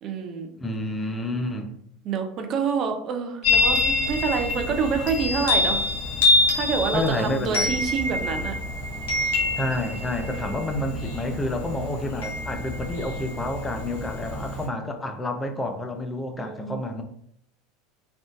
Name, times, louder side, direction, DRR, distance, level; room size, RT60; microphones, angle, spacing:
voice 1, 0.0-0.5 2.0-5.9 6.5-8.6 10.3-10.7 16.4-16.8, right 5 dB, 40° right, 5 dB, 0.5 m, -27 dB
voice 2, 0.6-1.7 6.9-7.8 9.6-17.0, left 1 dB, 15° left, 5 dB, 0.5 m, -29 dB
Chime, 3.4-14.7, left 2 dB, 65° left, 0.9 m, -26 dB
3.5 x 2.4 x 2.4 m, 0.69 s
figure-of-eight pair, 75°, 0 cm